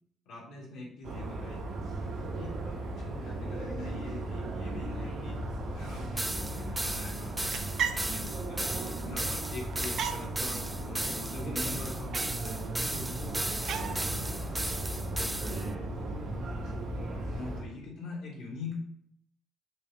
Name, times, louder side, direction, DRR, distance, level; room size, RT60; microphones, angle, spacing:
voice 1, 0.3-1.6 2.4-5.4 5.7-8.7 9.0-12.1 12.9-13.3 13.8-15.7 16.6-16.7 17.3-18.8, left 3 dB, 90° left, -3 dB, 2.1 m, -43 dB
sound 1, 1.0-17.6, right 1 dB, 85° right, 1.8 m, -36 dB
sound 2, 6.2-15.7, right 1 dB, 10° right, 0.4 m, -36 dB
sound 3, 7.2-15.0, right 7 dB, 70° right, 0.6 m, -40 dB
5.5 x 4.9 x 3.6 m, 0.68 s
cardioid pair, 90°, 0 cm